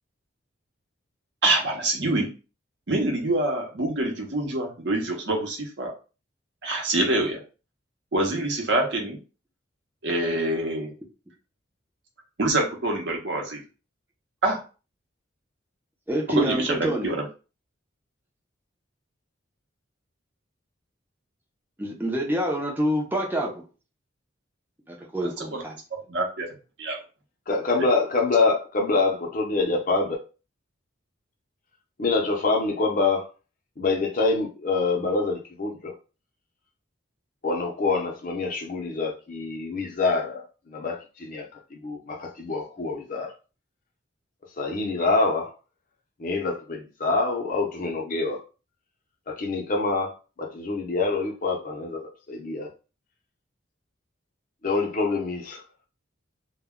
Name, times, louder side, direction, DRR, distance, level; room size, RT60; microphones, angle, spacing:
voice 1, 1.4-2.4 2.9-5.9 6.6-7.4 8.1-9.2 10.0-10.9 12.4-13.6 14.4-14.6 16.3-17.3 25.4-25.6 26.1-26.5 26.8-27.0, right 2 dB, 60° right, 0.7 m, -25 dB
voice 2, 16.1-17.1 21.8-23.6 24.9-25.8, right 1 dB, 10° right, 0.5 m, -27 dB
voice 3, 27.5-30.2 32.0-33.3 33.8-35.9 37.4-41.5 41.7-43.3 44.6-45.5 46.2-48.4 49.3-52.7 54.6-55.6, left 3 dB, 45° left, 0.6 m, -26 dB
2.1 x 2.1 x 3.5 m
head